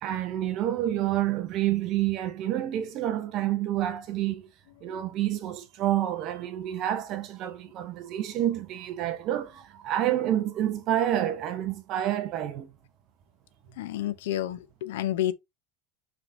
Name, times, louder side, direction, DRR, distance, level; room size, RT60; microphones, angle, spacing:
voice 1, 0.0-4.4 4.8-12.7, right 12 dB, 35° right, 0.5 m, -28 dB
voice 2, 13.8-15.3, left 12 dB, 70° left, 0.6 m, -30 dB
6.0 x 3.4 x 2.6 m
supercardioid pair, 165°, 0 cm